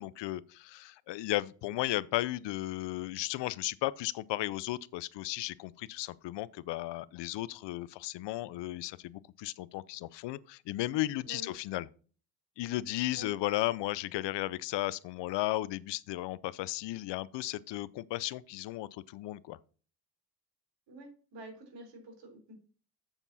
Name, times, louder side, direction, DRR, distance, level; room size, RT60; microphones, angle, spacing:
voice 1, 0.0-11.9 12.6-19.6, left 16 dB, 65° left, 0.6 m, -35 dB
voice 2, 20.9-22.5, right 1 dB, 70° right, 3.5 m, -48 dB
7.3 x 7.0 x 4.1 m
hypercardioid pair, 55°, 45 cm